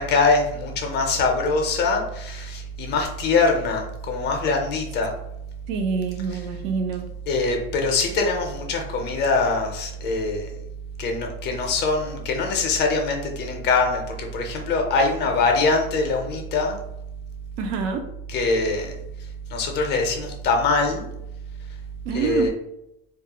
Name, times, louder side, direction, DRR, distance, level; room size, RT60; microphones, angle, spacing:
voice 1, 0.0-5.1 6.3-6.4 7.3-10.5 11.0-16.8 18.3-18.9 19.5-21.1 22.1-22.5, left 3 dB, 35° left, 3 dB, 0.5 m, -23 dB
voice 2, 5.7-7.0 17.6-18.0 22.1-22.5, right 5 dB, 60° right, 5 dB, 0.5 m, -26 dB
2.3 x 2.0 x 2.8 m, 0.84 s
supercardioid pair, 120°, 30 cm